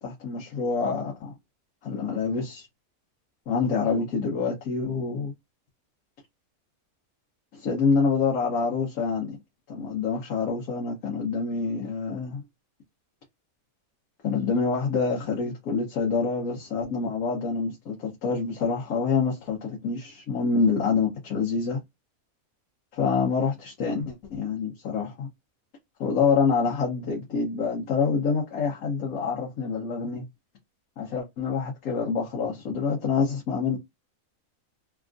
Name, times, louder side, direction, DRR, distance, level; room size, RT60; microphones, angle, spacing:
voice 1, 0.0-1.3 1.8-2.7 3.5-5.3 7.5-9.4 9.7-12.4 14.2-21.8 22.9-25.3 26.0-30.2 31.0-33.8, left 5 dB, 80° left, 1.3 m, -26 dB
3.4 x 2.4 x 2.4 m
omnidirectional pair, 1.5 m